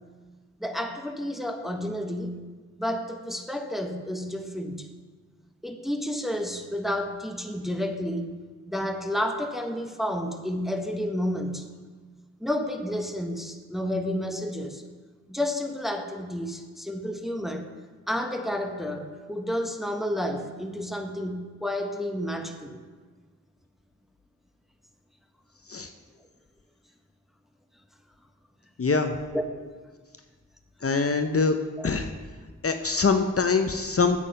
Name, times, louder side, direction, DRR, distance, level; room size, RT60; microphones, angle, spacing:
voice 1, 0.6-2.5 2.8-4.9 5.6-8.4 8.7-11.6 12.4-14.8 15.3-17.7 18.1-22.8 29.3-29.7 31.8-31.9, left 1 dB, ahead, 5 dB, 0.9 m, -31 dB
voice 2, 28.8-29.2 30.8-31.6 31.8-32.1 32.6-34.2, left 4 dB, 45° left, 6 dB, 0.6 m, -24 dB
8.4 x 7.4 x 5.2 m, 1.4 s
wide cardioid pair, 45°, 32 cm